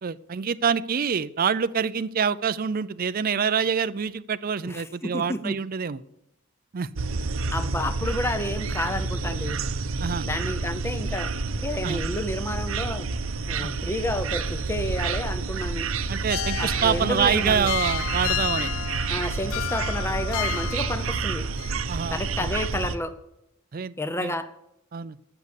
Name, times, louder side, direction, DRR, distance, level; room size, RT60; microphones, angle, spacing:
voice 1, 0.0-6.0 6.7-6.9 10.0-10.3 11.8-12.0 13.6-13.7 16.1-18.7 21.9-22.5 23.7-23.9 24.2-24.3 24.9-25.2, right 6 dB, 45° right, 15 dB, 0.4 m, -26 dB
voice 2, 4.7-5.6 7.5-9.6 10.2-11.3 11.6-13.1 13.5-15.9 16.6-17.7 19.1-21.5 22.1-23.1 24.0-24.5, left 1 dB, 10° left, 10 dB, 0.7 m, -30 dB
sound 1, 7.0-23.0, right 4 dB, 75° right, 0.8 m, -29 dB
sound 2, 16.3-21.3 21.6-21.8, left 12 dB, 75° left, 0.3 m, -32 dB
13.5 x 7.0 x 8.2 m, 0.84 s
head